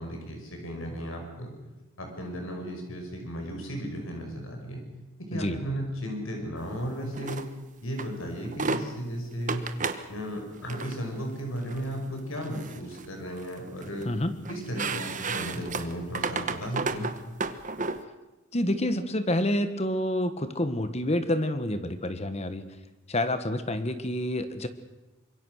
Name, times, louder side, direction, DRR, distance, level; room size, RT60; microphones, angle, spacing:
voice 1, 0.0-1.5 2.0-4.8 5.3-7.4 7.8-9.6 10.1-14.1 14.5-17.1, equal, 75° left, 2 dB, 5.9 m, -35 dB
sound 1, 7.1-7.5 8.0-8.1 8.4-8.8 9.5-10.0 10.6-10.9 11.7-11.9 12.4-13.1 13.4-14.0 14.4-18.0, right 4 dB, 35° right, 1.2 m, -32 dB
voice 2, 14.0-14.4 18.5-22.6 23.1-24.7, left 1 dB, 30° left, 10 dB, 1.4 m, -28 dB
25.5 x 22.5 x 6.5 m, 1.1 s
head